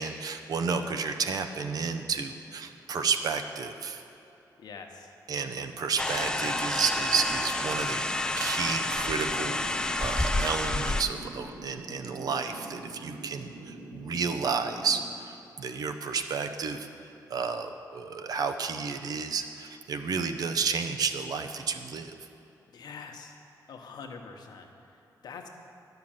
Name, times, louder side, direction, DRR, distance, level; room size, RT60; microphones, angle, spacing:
voice 1, 0.0-4.0 5.3-8.0 8.4-9.6 10.0-16.9 17.3-22.1, right 5 dB, 65° right, 7 dB, 0.7 m, -31 dB
voice 2, 4.6-5.1 22.7-23.4 23.7-25.5, left 5 dB, 80° left, 4 dB, 1.0 m, -45 dB
sound 1, 6.0-11.0, left 2 dB, 10° left, 0.4 m, -29 dB
sound 2, 6.1-15.1, right 2 dB, 85° right, 1.2 m, -44 dB
11.0 x 5.8 x 8.9 m, 2.8 s
wide cardioid pair, 170°, 7 cm